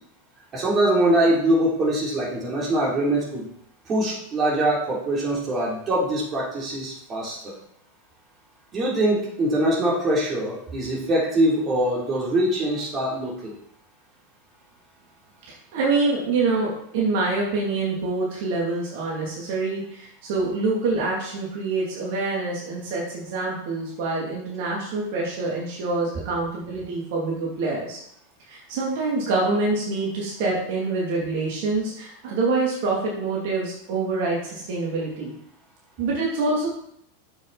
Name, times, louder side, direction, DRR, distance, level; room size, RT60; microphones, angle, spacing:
voice 1, 0.5-3.5 3.9-7.5 8.7-13.6, right 1 dB, 30° right, -4 dB, 3.6 m, -23 dB
voice 2, 15.5-28.0 28.5-35.3 36.0-36.7, right 3 dB, 60° right, -3 dB, 2.9 m, -26 dB
7.7 x 7.3 x 4.2 m, 0.71 s
hypercardioid pair, 105°, 0 cm